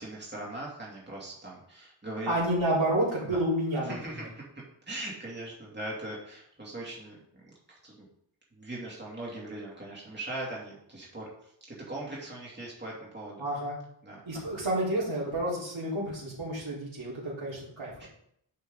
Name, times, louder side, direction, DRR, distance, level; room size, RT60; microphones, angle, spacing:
voice 1, 0.0-2.3 3.3-3.4 3.9-4.2 4.9-8.1 8.5-11.3 11.7-13.5 14.0-14.2 18.0-18.1, right 1 dB, 20° right, -5 dB, 2.6 m, -40 dB
voice 2, 2.3-4.3 13.4-13.8 14.3-17.9, right 1 dB, 70° right, -7 dB, 3.8 m, -30 dB
10.0 x 5.3 x 3.9 m, 0.69 s
wide cardioid pair, 80°, 48 cm